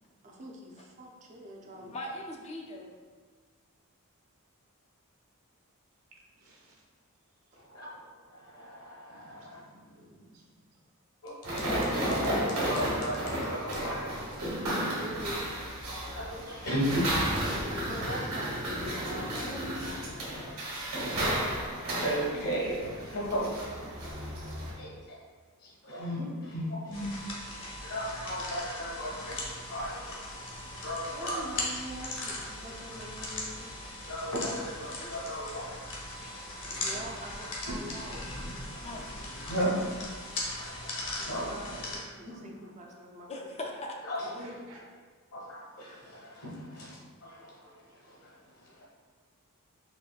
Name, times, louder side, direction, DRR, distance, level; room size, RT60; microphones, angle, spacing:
voice 1, 0.2-1.9 15.0-15.5 17.7-19.5 31.1-33.7 36.7-38.2 41.2-43.5 46.5-46.6, right 1 dB, 35° right, -1 dB, 0.5 m, -44 dB
voice 2, 1.7-2.9 19.3-19.8 22.2-22.5 36.2-36.3 38.8-39.2 43.3-44.0, left 1 dB, 30° left, 0 dB, 0.4 m, -40 dB
voice 3, 6.4-6.8 7.5-7.6 9.1-10.4 14.1-14.5 44.4-44.8, right 2 dB, 70° right, -3 dB, 0.8 m, -57 dB
voice 4, 7.6-9.6 11.2-11.4 11.7-14.0 14.3-14.5 16.0-18.2 19.8-20.8 22.0-25.2 25.6-27.3 27.8-30.1 30.6-31.4 34.1-35.8 36.8-37.3 38.7-39.0 39.5-40.1 40.6-41.8 42.3-42.7 44.0-44.5 45.3-48.8, equal, 75° left, -5 dB, 1.2 m, -36 dB
sound 1, 11.4-24.7, right 1 dB, 90° right, 1.3 m, -33 dB
sound 2, 26.9-42.0, left 2 dB, 60° left, 0.8 m, -39 dB
4.2 x 3.0 x 2.4 m, 1.5 s
head